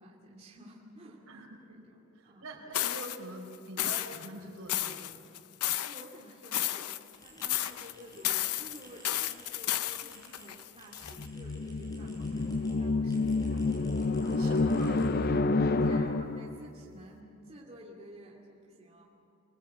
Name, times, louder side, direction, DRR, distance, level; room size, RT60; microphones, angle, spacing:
voice 1, 0.0-2.0 2.2-2.5 5.8-12.5 12.8-14.5 15.8-19.0, equal, 30° right, -4 dB, 2.6 m, -52 dB
voice 2, 1.3-1.9 2.1-5.2 14.2-15.5, right 1 dB, 70° right, 1 dB, 4.5 m, -44 dB
sound 1, 2.7-3.2 3.8-4.3 4.7-6.1 6.4-7.2 7.4-7.9 8.2-11.3, left 13 dB, 85° left, 0.7 m, -32 dB
sound 2, 7.1-12.7 13.1-15.4, equal, 15° left, 6.9 m, -56 dB
sound 3, 11.1-16.6, left 3 dB, 45° left, 0.6 m, -29 dB
26.0 x 20.0 x 8.7 m, 2.8 s
head